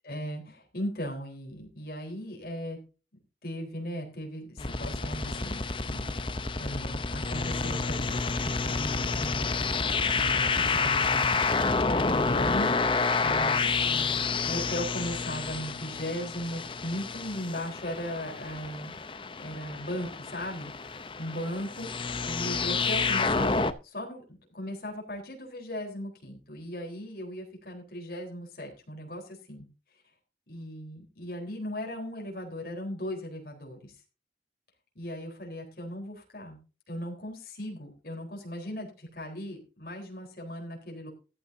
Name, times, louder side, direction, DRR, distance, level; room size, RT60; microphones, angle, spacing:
voice 1, 0.0-2.8 3.4-9.5 10.1-11.4 11.9-12.7 13.2-18.9 19.4-21.9 22.2-29.7 30.5-34.0 35.0-36.6 36.9-41.1, equal, 55° left, 1 dB, 4.0 m, -37 dB
sound 1, 4.6-23.7, left 4 dB, 30° left, 0.7 m, -29 dB
14.5 x 12.0 x 2.7 m, 0.33 s
head